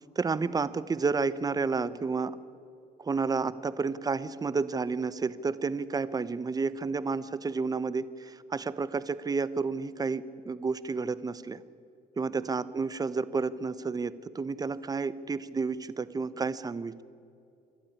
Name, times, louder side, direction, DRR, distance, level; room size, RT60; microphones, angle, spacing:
voice 1, 0.2-2.4 3.0-11.6 12.2-17.0, right 4 dB, 20° right, 15 dB, 0.8 m, -31 dB
26.5 x 12.0 x 10.0 m, 2.4 s
cardioid pair, 110°, 17 cm